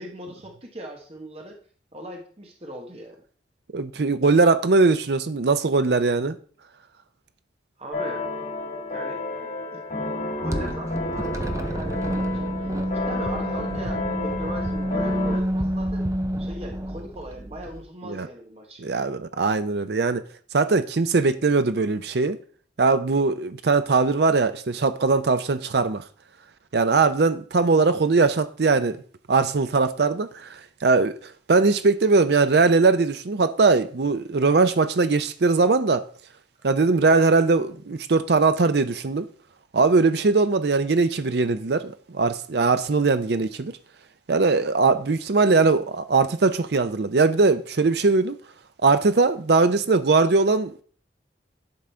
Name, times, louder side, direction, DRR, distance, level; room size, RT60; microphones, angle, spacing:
voice 1, 0.0-1.6 1.9-3.2 7.8-8.2 8.9-10.0 10.4-12.5 12.9-16.1 16.4-18.8, right 1 dB, 35° right, 1.2 m, -39 dB
voice 2, 3.7-6.4 18.1-18.3 18.8-20.2 20.5-22.4 22.8-26.0 26.7-29.0 29.3-30.5 30.8-31.1 31.5-36.1 36.6-39.3 39.7-43.7 44.3-48.4 48.8-50.8, right 4 dB, 65° right, 0.6 m, -20 dB
sound 1, 7.9-15.4, left 2 dB, 55° left, 3.5 m, -31 dB
sound 2, 10.5-17.8, equal, 15° right, 0.5 m, -29 dB
10.5 x 3.8 x 4.3 m
head